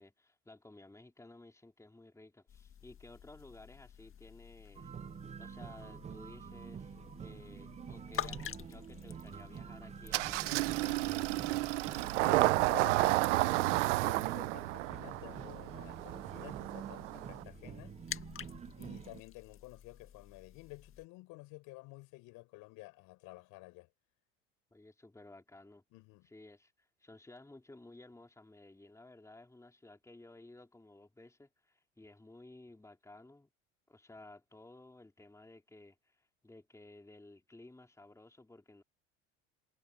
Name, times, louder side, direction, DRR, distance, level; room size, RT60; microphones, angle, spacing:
voice 1, 0.0-4.9 5.4-11.2 24.7-25.8 26.2-33.5 33.9-38.8, left 2 dB, 10° left, 3.1 m, -56 dB
sound 1, 2.5-21.1, left 10 dB, 35° left, 1.8 m, -50 dB
sound 2, 4.8-19.2, right 7 dB, 20° right, 0.4 m, -48 dB
Engine starting, 10.1-17.4, right 20 dB, 85° right, 0.5 m, -31 dB
voice 2, 12.2-18.0 18.8-23.9 25.9-26.3, left 22 dB, 65° left, 5.1 m, -51 dB
hypercardioid pair, 85°, 35 cm